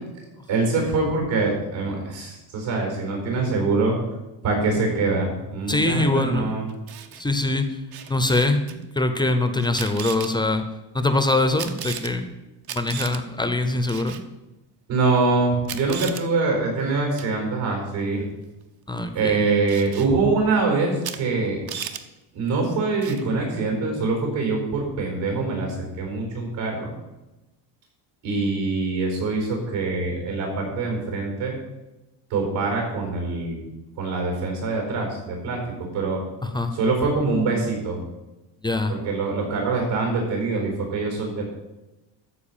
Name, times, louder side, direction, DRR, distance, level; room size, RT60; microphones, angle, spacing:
voice 1, 0.5-4.0 4.4-6.7 14.9-18.2 19.1-21.6 22.3-26.9 28.2-31.6 32.3-33.6 34.0-36.2 36.7-38.0 38.9-41.4, right 3 dB, 75° right, 1 dB, 4.7 m, -24 dB
voice 2, 5.7-6.5 7.2-7.8 8.1-10.6 10.9-12.3 12.7-14.2 18.9-19.4 36.5-36.7 38.6-39.0, left 2 dB, 10° left, 8 dB, 0.5 m, -23 dB
Camera, 6.7-7.2 7.9-8.7 9.6-10.3 11.6-12.1 12.6-13.2 13.9-14.2 15.2-15.3 15.6-16.2 17.2-17.4 19.7-20.1 21.0-21.2 21.5-22.0 23.0-23.3, right 9 dB, 55° right, 0.9 m, -35 dB
13.5 x 4.7 x 7.3 m, 1.0 s
cardioid pair, 155°, 46 cm